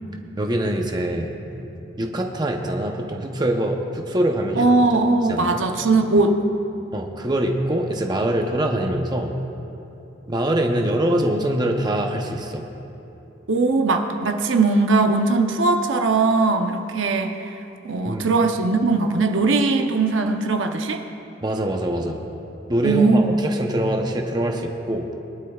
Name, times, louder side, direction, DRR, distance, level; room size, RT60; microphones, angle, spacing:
voice 1, 0.4-1.4 2.0-4.7 5.3-5.6 6.9-9.3 10.3-12.6 18.0-18.3 21.4-22.2 22.7-25.1, right 1 dB, 20° right, 2 dB, 0.7 m, -23 dB
voice 2, 4.6-6.4 13.5-21.0 22.8-23.4, right 3 dB, 75° right, 4 dB, 0.7 m, -20 dB
21.5 x 11.5 x 2.4 m, 2.9 s
head